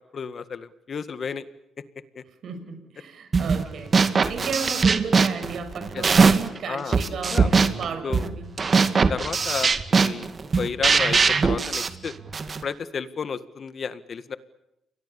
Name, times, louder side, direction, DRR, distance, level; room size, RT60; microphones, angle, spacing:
voice 1, 0.0-1.5 2.2-2.3 4.2-4.3 5.9-6.0 6.7-7.0 7.3-7.5 8.0-8.3 9.1-10.3 10.6-12.1 12.6-14.4, left 6 dB, 45° left, 13 dB, 1.8 m, -32 dB
voice 2, 2.4-3.9 4.3-8.5, right 5 dB, 60° right, 7 dB, 6.6 m, -34 dB
sound 1, 3.3-3.6 3.9-6.6 6.9-12.6, right 5 dB, 40° right, 2.2 m, -21 dB
29.5 x 22.5 x 7.1 m, 0.87 s
cardioid pair, 90°, 0 cm